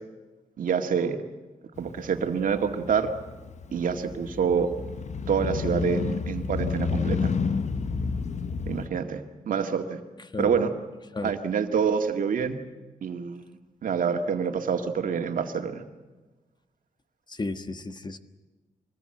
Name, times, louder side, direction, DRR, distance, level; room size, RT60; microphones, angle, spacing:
voice 1, 0.6-1.2 1.8-3.1 3.7-4.7 5.3-7.3 8.7-9.2 9.5-10.0 10.4-10.7 11.2-12.6 13.0-13.4 13.8-15.8, right 6 dB, 75° right, 5 dB, 2.1 m, -26 dB
Motorcycle, 1.8-8.9, left 5 dB, 55° left, 1.2 m, -30 dB
voice 2, 17.4-18.2, left 3 dB, 30° left, 10 dB, 1.4 m, -33 dB
24.0 x 19.5 x 7.9 m, 1.2 s
cardioid pair, 90°, 14 cm